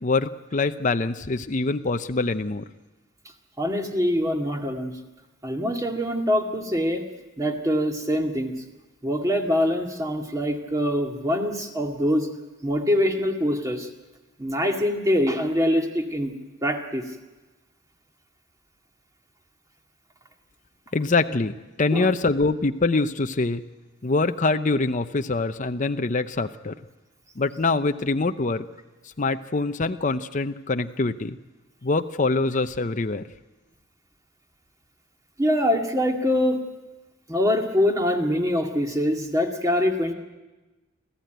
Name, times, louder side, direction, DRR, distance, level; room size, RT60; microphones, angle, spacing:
voice 1, 0.0-2.6 20.9-23.6 24.0-26.8 27.4-28.7 29.2-31.4 31.8-33.2, left 3 dB, 40° left, 9 dB, 0.7 m, -24 dB
voice 2, 3.6-4.9 5.4-7.1 7.4-8.5 9.0-12.3 12.6-13.9 14.4-16.3 16.6-17.0 21.9-22.1 35.4-36.6 37.3-40.1, equal, 15° right, 3 dB, 2.1 m, -24 dB
26.0 x 15.0 x 9.2 m, 1.1 s
head